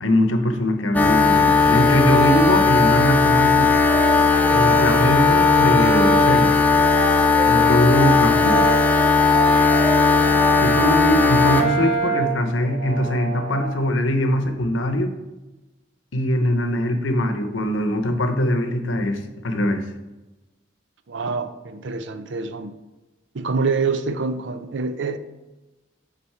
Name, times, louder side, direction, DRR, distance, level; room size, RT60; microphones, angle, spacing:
voice 1, 0.0-3.7 4.5-6.5 7.5-8.7 10.6-15.1 16.1-19.8, left 1 dB, 85° left, 0.8 m, -22 dB
sound 1, 0.9-11.6, left 4 dB, 10° left, 0.5 m, -17 dB
Brass instrument, 3.8-6.3 6.9-13.9, right 1 dB, 30° right, 2.2 m, -27 dB
voice 2, 7.5-8.1 21.1-22.7 23.3-25.2, right 4 dB, 75° right, 0.5 m, -26 dB
7.9 x 4.2 x 4.3 m
head